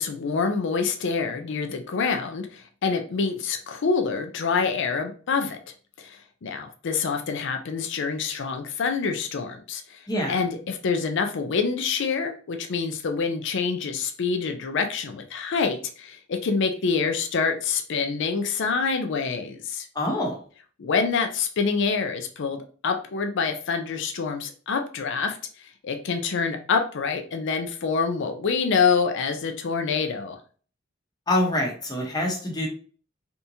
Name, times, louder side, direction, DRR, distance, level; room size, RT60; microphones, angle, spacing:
voice 1, 0.0-5.6 6.0-10.0 10.3-19.9 20.8-25.4 25.8-30.4, left 5 dB, 65° left, 6 dB, 0.5 m, -26 dB
voice 2, 10.1-10.4 19.9-20.4 31.3-32.7, left 1 dB, 20° left, -1 dB, 0.9 m, -25 dB
3.5 x 2.8 x 2.7 m, 0.42 s
head